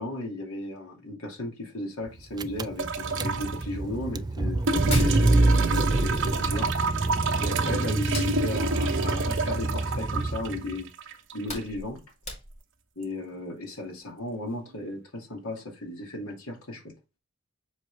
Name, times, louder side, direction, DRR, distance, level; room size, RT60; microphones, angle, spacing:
voice 1, 0.0-6.8 7.4-12.0 13.0-16.9, left 1 dB, 80° left, 2.5 m, -35 dB
Car / Engine, 2.1-2.2 2.4-10.7, right 2 dB, 20° right, 0.3 m, -26 dB
sound 1, 2.8-3.6 4.7-11.7 13.0-13.1, right 3 dB, 60° right, 1.0 m, -29 dB
Hands, 4.8-6.0 6.2-7.5 7.9-10.3 10.7-10.8 11.2-12.8, left 2 dB, 30° left, 2.3 m, -39 dB
7.6 x 4.3 x 3.5 m
head